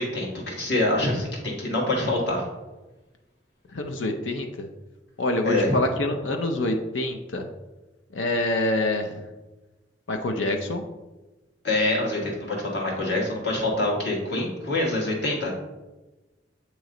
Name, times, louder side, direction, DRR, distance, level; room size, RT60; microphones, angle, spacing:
voice 1, 0.0-2.4 5.4-5.7 11.6-15.5, left 2 dB, 65° left, -2 dB, 1.6 m, -25 dB
voice 2, 3.7-4.7 5.2-7.5 8.1-9.2 10.1-10.8, left 2 dB, 85° left, 5 dB, 0.6 m, -26 dB
8.1 x 3.1 x 3.8 m, 1.1 s
head